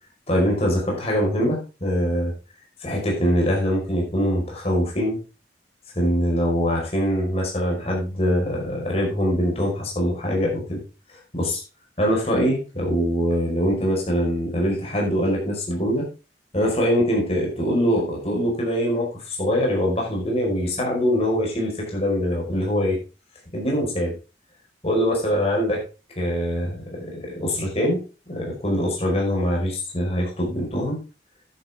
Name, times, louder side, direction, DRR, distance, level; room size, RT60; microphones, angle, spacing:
voice 1, 0.3-2.3 2.8-5.2 5.9-10.8 11.1-11.6 12.0-16.1 16.5-23.0 23.5-24.1 24.8-25.8 26.2-28.0 28.3-31.0, equal, 35° left, -1 dB, 5.0 m, -23 dB
11.0 x 10.5 x 3.6 m, 0.32 s
head